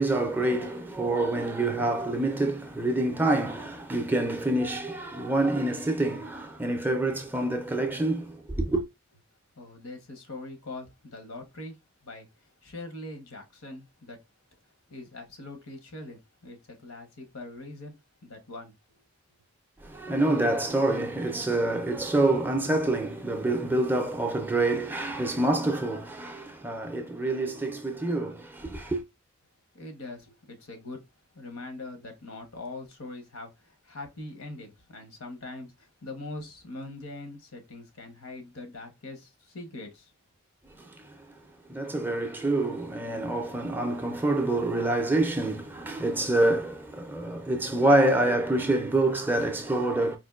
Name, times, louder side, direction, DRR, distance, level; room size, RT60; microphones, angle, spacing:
voice 1, 0.0-8.8 19.8-29.0 40.8-41.2 41.7-50.2, right 2 dB, 10° right, 0.4 m, -26 dB
voice 2, 9.6-11.8 12.0-12.3 12.6-14.2 14.9-17.9 18.2-18.7 29.7-31.0 31.3-40.1, left 2 dB, 85° left, 1.0 m, -42 dB
4.3 x 2.5 x 2.3 m
head